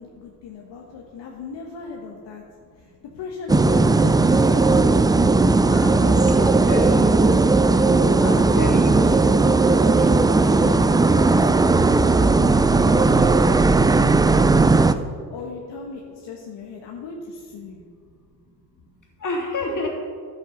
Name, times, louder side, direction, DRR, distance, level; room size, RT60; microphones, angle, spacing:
voice 1, 0.0-2.4 2.8-4.6 5.6-6.5 7.6-8.4 9.1-9.7 10.0-15.0 15.3-17.8 19.7-19.9, left 4 dB, 60° left, 0 dB, 1.5 m, -37 dB
sound 1, 3.5-14.9, right 3 dB, 10° right, 0.4 m, -17 dB
voice 2, 6.4-7.2 8.2-9.0 19.2-19.9, left 1 dB, 40° left, 0 dB, 3.1 m, -28 dB
11.0 x 8.1 x 5.1 m, 2.1 s
hypercardioid pair, 50°, 47 cm